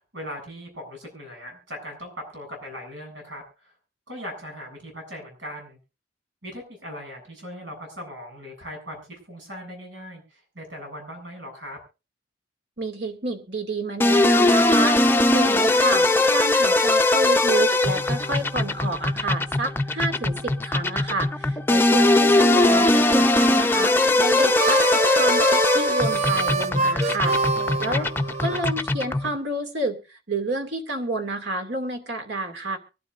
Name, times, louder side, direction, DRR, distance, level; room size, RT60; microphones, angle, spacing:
voice 1, 0.1-3.7 4.1-5.8 6.4-11.8 21.9-22.4 27.5-28.0, equal, 90° right, 2 dB, 7.8 m, -39 dB
voice 2, 12.8-15.0 15.3-27.4 27.8-28.1 28.4-32.8, right 2 dB, 65° right, 6 dB, 2.4 m, -29 dB
sound 1, 14.0-29.4, left 2 dB, 10° left, 0.6 m, -20 dB
Harmonica, 24.3-28.6, right 3 dB, 35° right, 0.6 m, -25 dB
24.5 x 12.0 x 2.5 m, 0.30 s
head